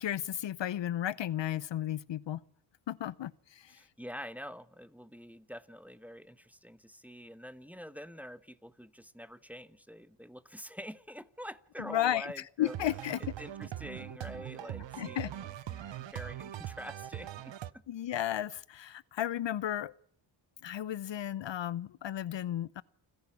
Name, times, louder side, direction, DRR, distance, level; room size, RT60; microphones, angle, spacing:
voice 1, 0.0-2.4 2.9-3.8 11.9-12.3 12.6-13.2 15.0-15.3 15.8-15.9 17.9-19.9 20.6-22.8, left 11 dB, 60° left, 0.7 m, -34 dB
voice 2, 3.7-12.8 13.4-17.8, equal, 5° right, 1.1 m, -46 dB
sound 1, 12.7-17.7, right 12 dB, 60° right, 0.8 m, -42 dB
28.5 x 10.5 x 8.6 m
supercardioid pair, 50°, 49 cm